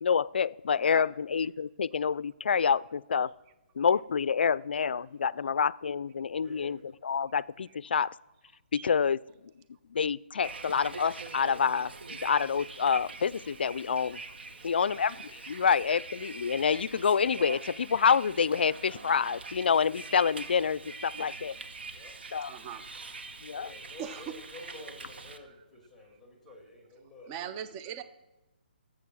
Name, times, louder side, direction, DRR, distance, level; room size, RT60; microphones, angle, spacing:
voice 1, 0.0-3.3 3.8-8.1 8.7-9.2 9.9-14.2 14.6-21.6 22.3-22.5 23.4-23.7, left 6 dB, 70° left, 23 dB, 0.3 m, -27 dB
voice 2, 6.3-6.8 14.5-15.0 21.9-22.1 23.5-27.5, left 1 dB, ahead, 1 dB, 2.1 m, -50 dB
Bus, 10.4-25.4, right 3 dB, 70° right, 1.4 m, -44 dB
voice 3, 22.5-22.8 24.0-24.2 27.3-28.0, right 9 dB, 15° right, 11 dB, 0.4 m, -39 dB
17.0 x 7.5 x 6.1 m, 1.0 s
hypercardioid pair, 165°, 6 cm